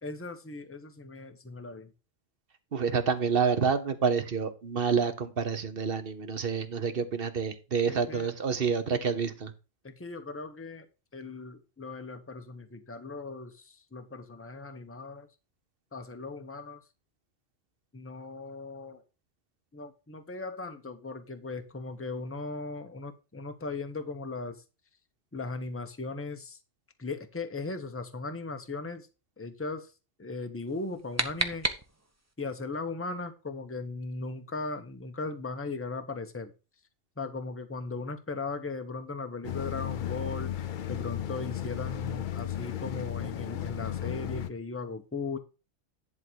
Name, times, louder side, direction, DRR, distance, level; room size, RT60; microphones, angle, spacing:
voice 1, 0.0-1.9 7.9-8.3 8.9-9.0 9.8-10.9 11.1-15.3 15.9-16.8 17.9-19.0 19.7-24.6 25.3-26.6 27.0-29.1 29.4-29.9 30.2-31.7 32.4-36.5 37.2-40.5 40.9-45.4, left 3 dB, 10° left, 7 dB, 0.9 m, -38 dB
voice 2, 2.7-9.5, right 6 dB, 55° right, 10 dB, 1.1 m, -28 dB
sound 1, 30.7-32.3, right 2 dB, 15° right, 0.9 m, -33 dB
sound 2, 39.4-44.5, left 11 dB, 55° left, 0.6 m, -34 dB
11.0 x 3.7 x 6.3 m, 0.31 s
omnidirectional pair, 1.2 m